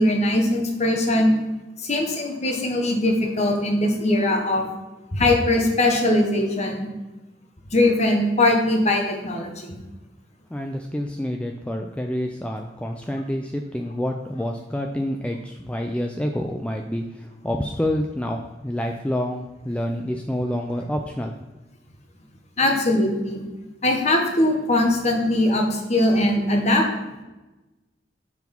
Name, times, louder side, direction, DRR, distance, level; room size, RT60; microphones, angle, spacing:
voice 1, 0.0-1.3 1.8-4.7 5.1-6.9 7.7-9.8 22.6-23.4 23.8-26.8, left 1 dB, 40° left, 2 dB, 1.1 m, -21 dB
voice 2, 10.5-21.3, left 1 dB, 5° left, 3 dB, 0.3 m, -28 dB
6.0 x 4.7 x 5.2 m, 1.1 s
head